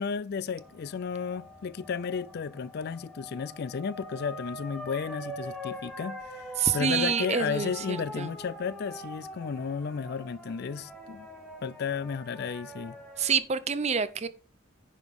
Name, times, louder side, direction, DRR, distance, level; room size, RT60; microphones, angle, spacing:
voice 1, 0.0-6.2 6.7-11.3 11.6-13.0, left 6 dB, 50° left, 0.4 m, -33 dB
sound 1, 0.6-13.4, left 1 dB, 5° left, 1.8 m, -43 dB
voice 2, 6.6-8.3 13.2-14.3, right 6 dB, 35° right, 0.6 m, -27 dB
10.0 x 5.1 x 5.3 m
head